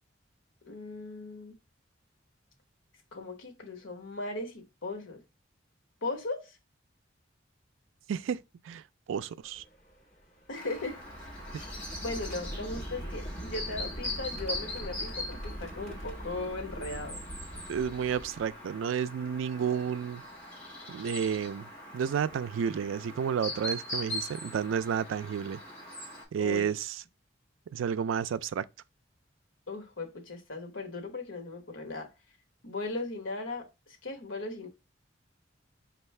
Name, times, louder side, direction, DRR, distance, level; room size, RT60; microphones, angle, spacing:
voice 1, 0.7-1.5 3.1-5.2 6.0-6.6 10.5-11.4 12.0-17.2 26.4-26.7 29.7-32.1 32.6-33.7 34.0-34.7, left 2 dB, 85° left, 1.1 m, -38 dB
voice 2, 8.1-8.4 8.7-8.8 9.1-9.6 17.7-20.2 20.9-21.7 21.9-25.6 26.3-27.0 27.7-28.6, right 7 dB, 85° right, 0.3 m, -31 dB
sound 1, 9.4-18.7 19.6-19.7 21.2-21.4 22.1-22.3 23.9-24.0 24.5-24.7, right 1 dB, 35° left, 1.2 m, -42 dB
Chirp tweet, 10.5-26.2, left 1 dB, 10° left, 1.9 m, -41 dB
5.4 x 2.4 x 3.2 m
head